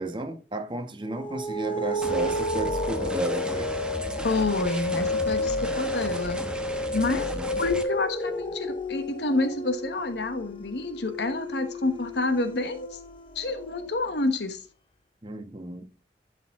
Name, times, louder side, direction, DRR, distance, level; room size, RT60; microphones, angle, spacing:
voice 1, 0.0-3.7 7.0-7.5 15.2-15.9, right 1 dB, 25° right, 1.2 m, -33 dB
sound 1, 1.1-13.9, left 1 dB, 30° left, 0.8 m, -31 dB
sound 2, 2.0-7.8, equal, 5° right, 1.0 m, -35 dB
voice 2, 4.2-6.4 6.9-7.3 7.6-13.0 13.3-14.6, left 2 dB, 65° left, 1.2 m, -28 dB
11.5 x 6.5 x 3.7 m
head